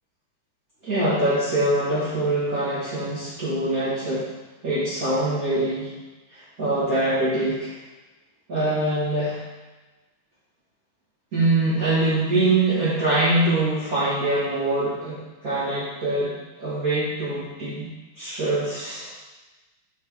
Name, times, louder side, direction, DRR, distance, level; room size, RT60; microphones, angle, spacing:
voice 1, 0.8-4.3 4.6-5.9 6.3-7.7 8.5-9.4 11.3-19.1, right 2 dB, 45° right, -11 dB, 2.0 m, -24 dB
9.1 x 4.2 x 3.6 m, 1.2 s
omnidirectional pair, 2.3 m